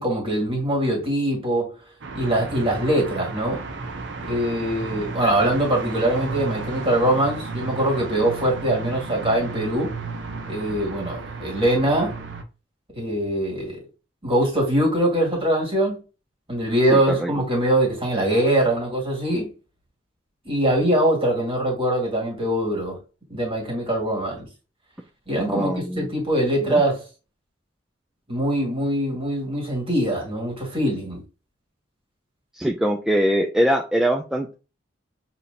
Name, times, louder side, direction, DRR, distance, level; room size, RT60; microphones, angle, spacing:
voice 1, 0.0-1.7 2.1-3.6 4.3-9.9 10.5-12.1 12.9-13.9 14.2-16.0 16.5-19.5 20.4-23.0 23.3-24.5 25.3-27.0 28.3-31.2, right 1 dB, 30° right, 2.0 m, -22 dB
sound 1, 2.0-12.4, right 3 dB, 65° right, 0.6 m, -33 dB
voice 2, 16.9-17.3 25.5-26.1 26.6-26.8 32.5-34.5, equal, 5° right, 0.3 m, -22 dB
6.6 x 2.9 x 2.6 m
head